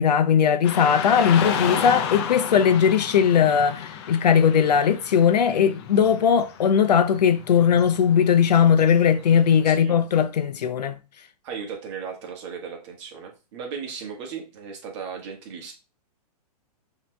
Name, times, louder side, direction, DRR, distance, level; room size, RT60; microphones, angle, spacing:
voice 1, 0.0-11.0, left 7 dB, 85° left, 0.5 m, -19 dB
Car passing by / Traffic noise roadway noise, 0.6-9.7, left 8 dB, 40° left, 0.5 m, -33 dB
voice 2, 1.4-1.8 9.6-9.9 11.4-15.7, right 6 dB, 45° right, 1.3 m, -36 dB
5.7 x 2.9 x 2.2 m
hypercardioid pair, 140°, 20 cm